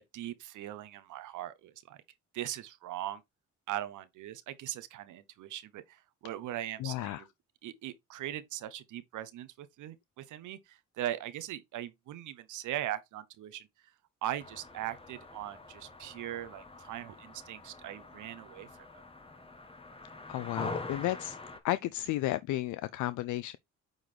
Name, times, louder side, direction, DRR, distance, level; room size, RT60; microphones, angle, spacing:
voice 1, 0.1-2.0 2.3-3.2 3.7-7.3 7.6-13.7 14.2-18.9, right 13 dB, 80° right, 0.8 m, -40 dB
voice 2, 6.8-7.2 20.3-21.4 21.6-23.6, left 15 dB, 75° left, 0.4 m, -33 dB
sound 1, 14.4-21.6, left 2 dB, 20° left, 1.3 m, -45 dB
8.9 x 4.0 x 3.2 m
cardioid pair, 90°, 30 cm